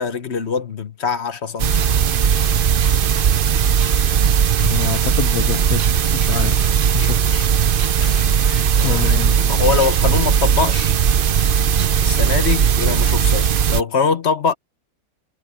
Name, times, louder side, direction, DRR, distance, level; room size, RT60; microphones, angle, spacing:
voice 1, 0.0-1.8 8.8-10.9 12.0-14.5, left 5 dB, 45° left, 1.2 m, -23 dB
sound 1, 1.6-13.8, right 8 dB, 60° right, 0.5 m, -17 dB
voice 2, 4.6-5.8 6.1-6.6 6.9-7.5 8.0-9.3, left 12 dB, 65° left, 1.3 m, -27 dB
omnidirectional pair, 1.8 m